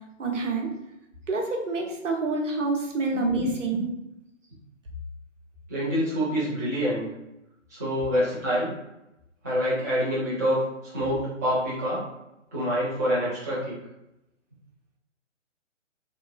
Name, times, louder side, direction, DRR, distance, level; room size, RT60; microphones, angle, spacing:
voice 1, 0.2-0.7 1.3-3.9, right 3 dB, 75° right, 1 dB, 0.8 m, -27 dB
voice 2, 3.1-3.4 3.7-3.8 5.7-7.0 7.7-8.7 9.4-10.6 10.9-12.0 12.5-13.7, equal, 15° right, -10 dB, 0.4 m, -26 dB
2.9 x 2.3 x 2.3 m, 0.89 s
figure-of-eight pair, 135°, 37 cm